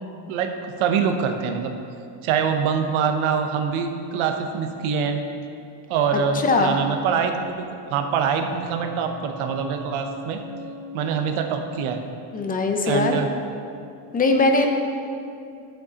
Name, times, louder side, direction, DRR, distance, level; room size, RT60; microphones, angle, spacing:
voice 1, 0.8-1.7 2.2-5.2 5.9-10.4 10.9-12.0 12.8-13.3, right 6 dB, 70° right, 5 dB, 0.9 m, -24 dB
voice 2, 6.1-6.8 12.3-13.2 14.1-14.7, left 3 dB, 20° left, 4 dB, 0.5 m, -20 dB
sound 1, 7.9-13.3 13.6-13.7, left 2 dB, 10° right, 1.3 m, -42 dB
11.0 x 7.7 x 2.9 m, 2.5 s
cardioid pair, 155°, 50 cm